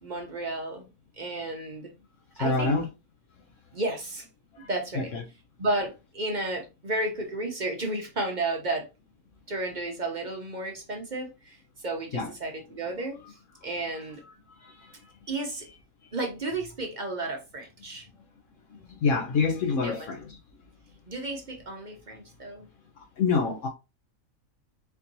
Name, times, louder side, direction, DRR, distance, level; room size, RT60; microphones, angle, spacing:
voice 1, 0.0-0.8 1.2-1.9 2.4-2.8 3.7-4.3 4.7-5.1 5.6-8.9 9.5-13.4 13.6-14.2 15.3-15.6 16.1-18.1 19.8-20.1 21.1-22.7, right 2 dB, 40° right, 0.8 m, -32 dB
voice 2, 2.4-2.8 4.6-4.7 5.0-5.2 12.1-12.3 14.6-14.9 19.0-20.2 23.2-23.7, left 4 dB, 70° left, 1.0 m, -26 dB
4.4 x 2.8 x 2.6 m
omnidirectional pair, 1.4 m